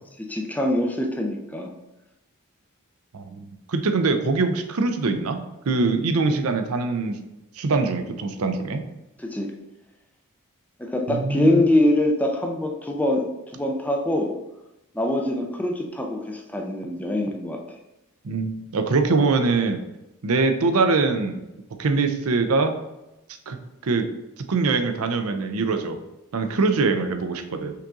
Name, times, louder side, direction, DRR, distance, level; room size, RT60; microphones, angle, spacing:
voice 1, 0.2-1.7 9.2-9.5 10.8-13.2 13.5-14.3 14.9-17.6, left 1 dB, 5° left, 1 dB, 0.5 m, -23 dB
voice 2, 3.1-7.2 7.6-8.8 11.1-11.6 18.2-19.8 20.2-21.4 21.8-22.7 23.5-23.6 23.8-24.1 24.5-26.0 26.3-27.7, right 3 dB, 80° right, 7 dB, 0.5 m, -23 dB
5.5 x 2.6 x 3.6 m, 0.94 s
head